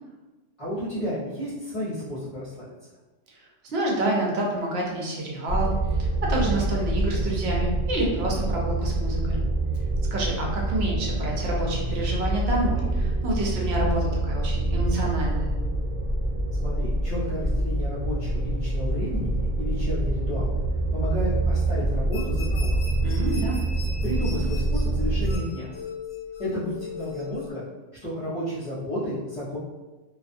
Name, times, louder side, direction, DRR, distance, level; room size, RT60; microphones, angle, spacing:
voice 1, 0.6-2.6 16.6-19.3 19.6-20.6 20.9-22.8 24.0-25.7 26.4-27.6 28.0-29.6, equal, 30° left, -11 dB, 0.9 m, -32 dB
voice 2, 3.4-5.7 6.0-9.4 10.1-15.6 23.0-23.6, right 1 dB, 65° right, -2 dB, 0.8 m, -28 dB
sound 1, 5.5-25.4, right 2 dB, 30° right, 0.8 m, -26 dB
sound 2, 22.1-27.5, left 5 dB, 65° left, 0.8 m, -39 dB
2.4 x 2.3 x 2.5 m, 1.2 s
omnidirectional pair, 1.2 m